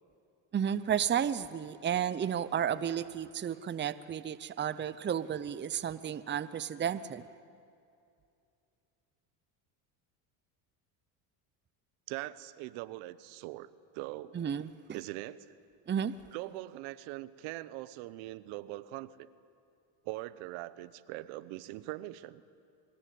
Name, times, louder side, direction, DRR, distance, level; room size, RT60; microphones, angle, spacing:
voice 1, 0.5-7.2 14.3-15.0 15.9-16.1, right 9 dB, 20° right, 15 dB, 0.7 m, -32 dB
voice 2, 12.1-13.7 13.9-14.4 14.9-15.5 16.3-19.3 20.0-22.4, right 17 dB, 70° right, 16 dB, 1.0 m, -41 dB
25.0 x 21.5 x 8.5 m, 2.5 s
supercardioid pair, 95°, 49 cm